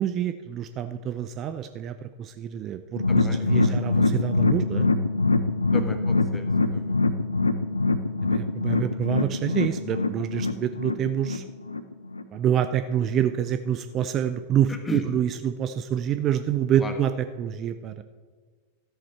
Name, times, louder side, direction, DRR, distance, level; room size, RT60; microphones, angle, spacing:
voice 1, 0.0-4.9 8.2-11.4 12.3-18.0, right 9 dB, 30° right, 10 dB, 0.4 m, -27 dB
sound 1, 2.9-12.2 12.5-12.7 13.0-13.1, left 3 dB, 80° left, 0.5 m, -24 dB
voice 2, 3.1-3.8 5.7-6.9 14.7-15.1 16.8-16.9, left 2 dB, 15° left, 6 dB, 1.2 m, -36 dB
13.5 x 7.3 x 4.4 m, 1.5 s
figure-of-eight pair, 90°, 0 cm